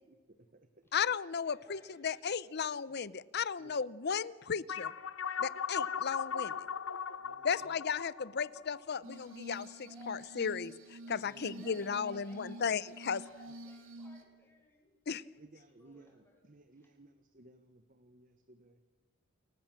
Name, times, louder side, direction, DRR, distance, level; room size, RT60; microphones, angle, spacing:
voice 1, 0.1-0.9 3.6-4.0 7.2-8.0 11.2-11.5 13.5-13.6 15.4-18.8, right 2 dB, 45° right, 8 dB, 1.2 m, -60 dB
voice 2, 0.9-4.9 5.4-6.5 7.4-13.2 15.1-15.2, left 6 dB, 55° left, 20 dB, 0.7 m, -35 dB
voice 3, 1.4-2.1 6.6-7.4 9.9-10.1 11.0-12.9 13.1-14.9 15.8-16.3 16.8-16.9, left 1 dB, 10° left, 0 dB, 6.2 m, -61 dB
sound 1, 4.7-9.5, left 7 dB, 75° left, 0.9 m, -38 dB
Glass, 9.0-14.2, right 1 dB, 75° right, 2.6 m, -48 dB
29.0 x 15.0 x 7.6 m, 1.3 s
head